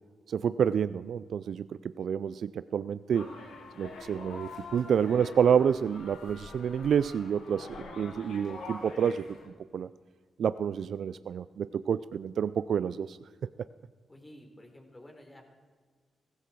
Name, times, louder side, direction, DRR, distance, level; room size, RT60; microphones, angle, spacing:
voice 1, 0.3-3.3 3.8-9.9 10.4-13.2, right 8 dB, 70° right, 15 dB, 0.3 m, -29 dB
sound 1, 3.1-9.5, left 3 dB, 80° left, 2.0 m, -45 dB
voice 2, 14.1-15.4, left 1 dB, 25° left, 2 dB, 4.1 m, -51 dB
16.0 x 15.0 x 4.6 m, 1.5 s
supercardioid pair, 50°, 0 cm